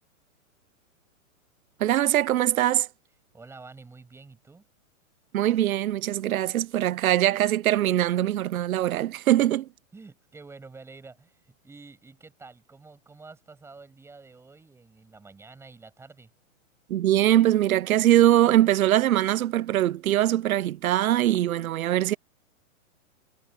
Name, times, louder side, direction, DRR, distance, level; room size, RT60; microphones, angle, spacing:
voice 1, 1.8-2.9 5.3-9.7 16.9-22.2, right 13 dB, 85° right, 0.7 m, -22 dB
voice 2, 3.3-4.6 9.9-16.3, right 4 dB, 5° right, 7.9 m, -48 dB
hypercardioid pair, 165°, 41 cm